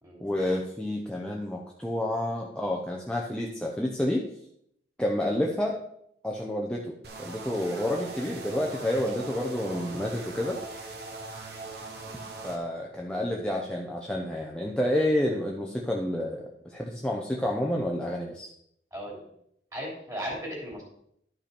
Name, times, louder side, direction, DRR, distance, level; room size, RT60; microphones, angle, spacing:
voice 1, 0.2-4.3 5.0-5.8 6.2-10.6 12.4-18.5, left 1 dB, 5° left, -2 dB, 0.8 m, -29 dB
sound 1, 7.0-12.6, right 3 dB, 65° right, 1.5 m, -40 dB
voice 2, 18.9-19.2 19.7-20.8, equal, 20° right, -2 dB, 3.2 m, -36 dB
11.5 x 5.7 x 4.4 m, 0.72 s
head